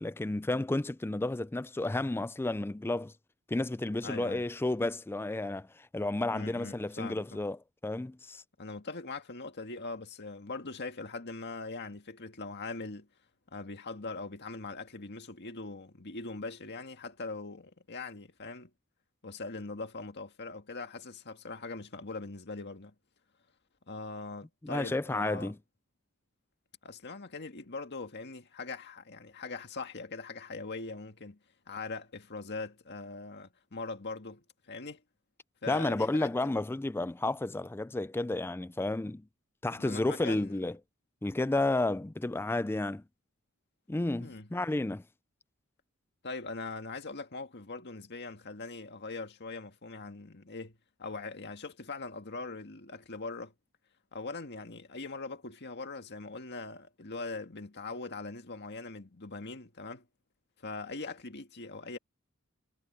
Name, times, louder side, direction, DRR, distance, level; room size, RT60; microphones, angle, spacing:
voice 1, 0.0-3.1 3.5-8.4 24.6-25.6 35.7-39.3 39.6-40.8 41.2-43.0 43.9-45.0, left 2 dB, 10° left, 0.4 m, -32 dB
voice 2, 4.0-4.4 6.3-7.3 8.6-13.1 13.5-18.7 19.2-22.9 23.9-25.5 26.8-31.4 31.7-35.0 35.6-36.5 39.7-40.6 44.2-44.5 46.2-53.5 54.1-60.0 60.6-62.0, left 3 dB, 50° left, 1.9 m, -41 dB
head